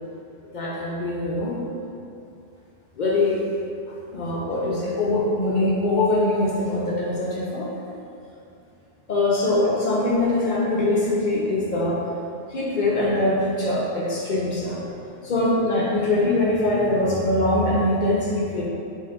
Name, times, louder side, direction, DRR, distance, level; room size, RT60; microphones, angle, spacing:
voice 1, 0.5-1.6 3.0-3.4 4.1-7.7 9.1-12.0 12.5-14.8 15.2-18.6, left 2 dB, 55° left, -5 dB, 0.6 m, -22 dB
3.5 x 2.5 x 3.4 m, 2.5 s
omnidirectional pair, 1.1 m